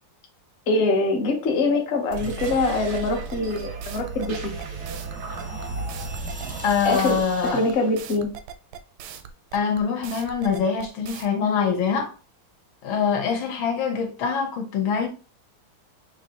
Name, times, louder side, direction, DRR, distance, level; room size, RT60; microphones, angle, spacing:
voice 1, 0.7-4.3 6.8-8.3, left 2 dB, 45° left, 0.9 m, -24 dB
sound 1, 2.0-7.1, right 5 dB, 60° right, 0.7 m, -36 dB
sound 2, 3.3-11.3, right 8 dB, 80° right, 1.4 m, -40 dB
sound 3, 3.4-7.9, right 1 dB, 10° right, 0.5 m, -38 dB
voice 2, 6.6-7.6 9.5-12.1 12.8-15.1, left 6 dB, 75° left, 1.6 m, -24 dB
5.9 x 2.6 x 2.8 m
omnidirectional pair, 2.3 m